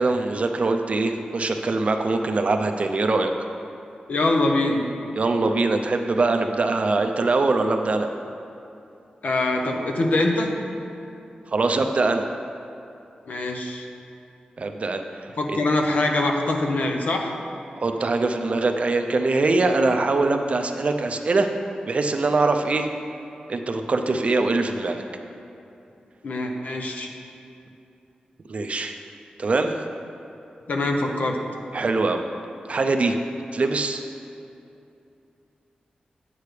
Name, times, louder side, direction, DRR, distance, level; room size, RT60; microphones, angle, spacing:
voice 1, 0.0-3.3 5.2-8.1 11.5-12.3 14.6-15.6 17.8-21.5 21.9-22.9 23.5-25.0 28.5-29.0 29.4-29.8 31.7-32.2 32.7-33.2 33.5-34.0, right 3 dB, 50° right, 5 dB, 0.5 m, -23 dB
voice 2, 4.1-4.9 9.2-10.5 13.3-13.9 15.4-17.3 26.2-27.1 30.7-31.4, left 2 dB, 70° left, 2 dB, 0.9 m, -23 dB
9.1 x 8.5 x 3.3 m, 2.7 s
wide cardioid pair, 95°, 3 cm